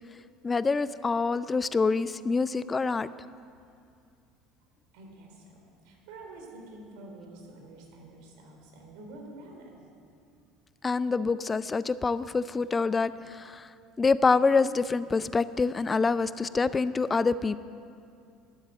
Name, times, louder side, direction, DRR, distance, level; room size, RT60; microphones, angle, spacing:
voice 1, 0.4-3.1 10.8-13.7 14.0-17.6, left 4 dB, 25° left, 15 dB, 0.4 m, -26 dB
voice 2, 4.9-9.8, right 2 dB, 75° right, 1 dB, 3.9 m, -48 dB
12.5 x 11.5 x 7.9 m, 2.4 s
hypercardioid pair, 85°, 0 cm